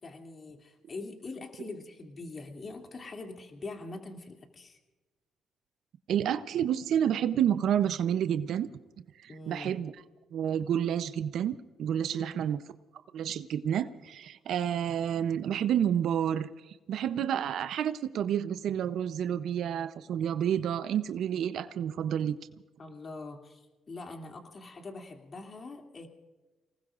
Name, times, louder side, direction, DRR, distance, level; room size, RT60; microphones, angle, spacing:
voice 1, 0.0-4.8 9.3-9.8 12.1-12.4 22.8-26.1, left 3 dB, 40° left, 3 dB, 2.7 m, -43 dB
voice 2, 6.1-8.7 9.2-9.9 10.3-12.6 13.1-16.5 16.9-22.3, right 9 dB, 75° right, 12 dB, 0.6 m, -29 dB
30.0 x 19.0 x 2.5 m, 1.2 s
cardioid pair, 90°, 0 cm